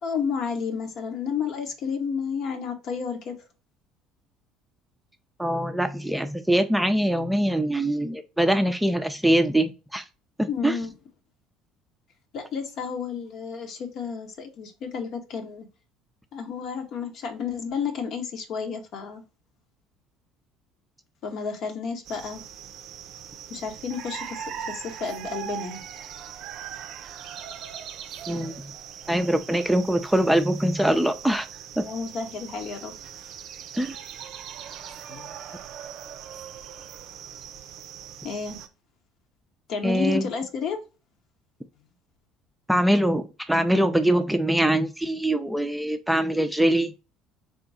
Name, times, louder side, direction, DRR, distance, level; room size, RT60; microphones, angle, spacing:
voice 1, 0.0-3.3 10.5-10.9 12.3-15.7 16.3-19.2 21.2-22.4 23.5-25.8 31.8-32.9 35.1-35.3 38.2-38.6 39.7-40.8, left 6 dB, 55° left, 0.9 m, -31 dB
voice 2, 5.4-10.0 10.4-10.8 28.3-28.6 29.1-31.4 31.8-31.9 33.8-34.0 39.8-40.3 42.7-46.9, right 1 dB, 5° right, 0.5 m, -23 dB
sound 1, 22.0-38.7, right 9 dB, 60° right, 0.4 m, -40 dB
3.6 x 2.2 x 4.0 m
hypercardioid pair, 60°, 0 cm